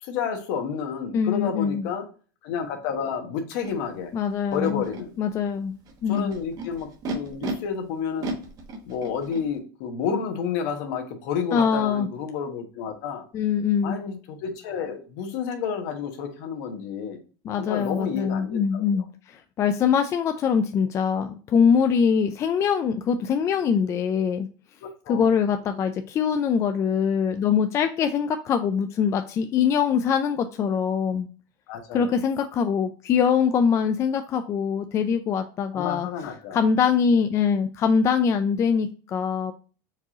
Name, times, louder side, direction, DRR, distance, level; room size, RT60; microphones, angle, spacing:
voice 1, 0.0-2.1 2.4-4.1 4.5-5.1 6.1-8.3 8.9-13.2 13.8-17.2 17.6-19.0 24.8-25.3 31.7-32.2 35.7-36.6, left 7 dB, 60° left, 4 dB, 1.2 m, -30 dB
voice 2, 1.1-1.9 4.1-4.8 5.2-5.8 6.0-6.3 11.5-12.1 13.3-14.0 17.4-24.5 25.1-31.3 31.9-36.1 36.5-39.5, left 7 dB, 25° left, 7 dB, 0.3 m, -23 dB
Animal, 3.6-3.7 4.5-5.0 5.9-7.5 8.2-9.4, right 2 dB, 35° right, 1.1 m, -34 dB
4.6 x 3.0 x 3.6 m, 0.38 s
supercardioid pair, 140°, 11 cm